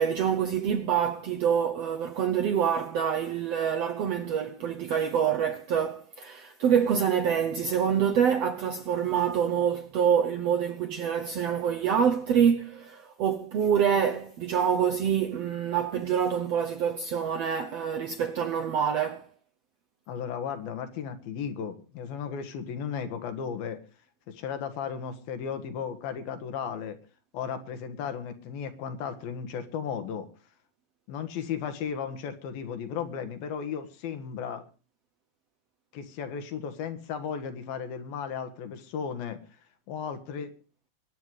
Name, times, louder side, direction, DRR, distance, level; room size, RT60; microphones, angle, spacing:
voice 1, 0.0-19.3, right 8 dB, 70° right, 1.5 m, -26 dB
voice 2, 20.1-23.8 24.3-27.0 27.3-30.3 31.1-34.7 35.9-39.4 39.9-40.5, left 7 dB, 85° left, 3.5 m, -35 dB
23.0 x 9.4 x 4.9 m
omnidirectional pair, 4.1 m